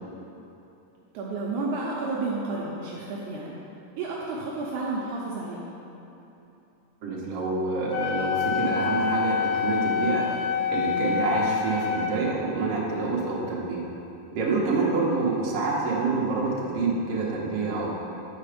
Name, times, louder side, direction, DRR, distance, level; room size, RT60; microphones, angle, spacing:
voice 1, 1.1-3.6 4.0-5.6 14.6-14.9, right 3 dB, 80° right, -4 dB, 2.1 m, -31 dB
voice 2, 7.0-10.4 10.7-13.8 14.3-17.9, right 3 dB, 60° right, -5 dB, 2.0 m, -27 dB
Wind instrument woodwind instrument, 7.9-12.1, left 7 dB, 80° left, 2.1 m, -27 dB
8.6 x 4.6 x 5.0 m, 3.0 s
omnidirectional pair, 3.7 m